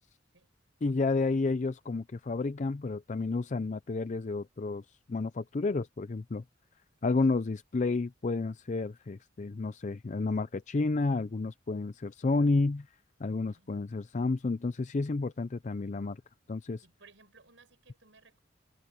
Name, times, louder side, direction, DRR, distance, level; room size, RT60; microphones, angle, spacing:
voice 1, 0.8-4.8 5.1-6.4 7.0-12.9 13.2-16.2 16.5-16.8, left 3 dB, 40° left, 0.5 m, -31 dB
voice 2, 13.2-13.7 16.8-18.4, right 4 dB, 75° right, 6.2 m, -60 dB
head